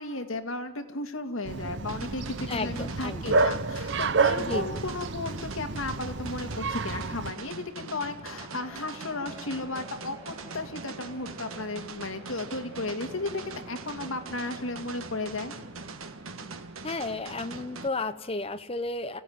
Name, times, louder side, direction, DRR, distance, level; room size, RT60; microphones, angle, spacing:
voice 1, 0.0-15.5, left 2 dB, 70° left, 6 dB, 2.2 m, -35 dB
Bark, 1.5-7.3, right 3 dB, 55° right, 0.9 m, -29 dB
sound 1, 1.9-17.9, right 3 dB, 75° right, 1.6 m, -42 dB
voice 2, 2.5-3.3 4.4-4.8 16.8-19.2, left 2 dB, 25° left, 10 dB, 1.1 m, -33 dB
Guitar, 8.2-16.8 17.2-17.5, right 1 dB, 15° right, 5.6 m, -51 dB
29.0 x 16.0 x 9.6 m, 1.1 s
head